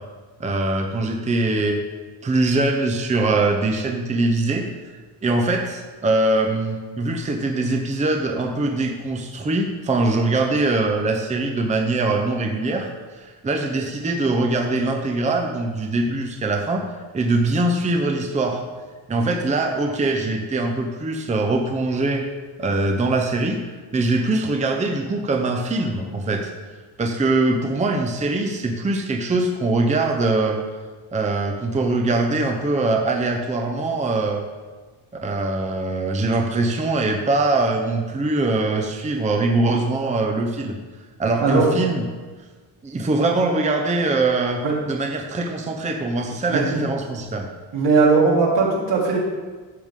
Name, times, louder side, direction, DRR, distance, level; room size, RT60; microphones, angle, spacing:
voice 1, 0.4-1.8 2.2-4.6 5.2-16.8 17.1-18.6 19.1-22.2 22.6-26.5 27.0-30.6 31.1-34.4 35.2-40.8 41.2-42.1 42.8-44.6 44.9-47.5, right 2 dB, 15° right, 3 dB, 0.7 m, -22 dB
voice 2, 46.5-46.8 47.7-49.2, right 4 dB, 75° right, -4 dB, 3.1 m, -18 dB
12.0 x 8.0 x 3.7 m, 1.4 s
cardioid pair, 155°, 44 cm